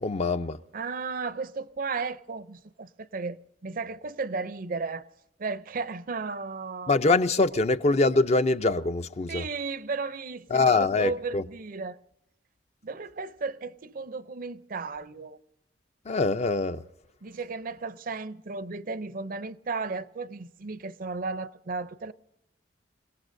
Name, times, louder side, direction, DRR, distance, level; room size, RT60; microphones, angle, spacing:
voice 1, 0.0-0.6 6.9-9.5 10.5-11.4 16.1-16.8, left 3 dB, 35° left, 0.5 m, -24 dB
voice 2, 0.7-5.1 5.4-7.0 9.3-12.0 12.8-15.4 17.2-22.1, right 4 dB, 50° right, 0.5 m, -34 dB
28.0 x 18.0 x 2.6 m
head